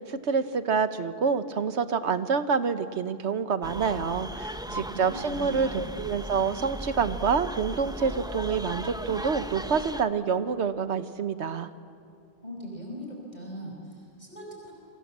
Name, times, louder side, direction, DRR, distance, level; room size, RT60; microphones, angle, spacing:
voice 1, 0.1-11.7, right 6 dB, 70° right, 11 dB, 1.4 m, -27 dB
sound 1, 3.6-10.0, right 1 dB, 5° right, 0.5 m, -37 dB
voice 2, 4.7-6.0 12.4-14.7, equal, 35° left, -1 dB, 4.9 m, -40 dB
28.0 x 25.5 x 7.4 m, 2.3 s
omnidirectional pair, 1.2 m